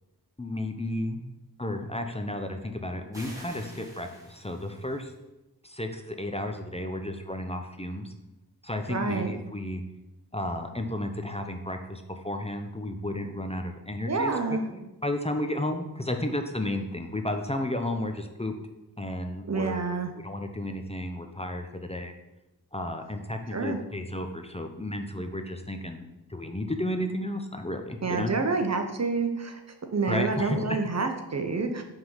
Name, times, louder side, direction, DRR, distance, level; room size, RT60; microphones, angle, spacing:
voice 1, 0.4-1.2 1.6-5.1 5.6-8.1 8.6-9.8 10.3-14.3 14.7-18.5 19.0-22.1 22.7-28.3 30.1-30.8, left 1 dB, 15° left, 5 dB, 0.7 m, -33 dB
sound 1, 3.1-5.2, right 1 dB, 10° right, 2.0 m, -48 dB
voice 2, 8.9-9.3 14.1-14.6 19.5-20.1 23.5-23.8 28.0-29.6 29.9-31.8, right 4 dB, 40° right, 6 dB, 0.8 m, -28 dB
5.6 x 3.7 x 5.6 m, 0.97 s
cardioid pair, 45°, 39 cm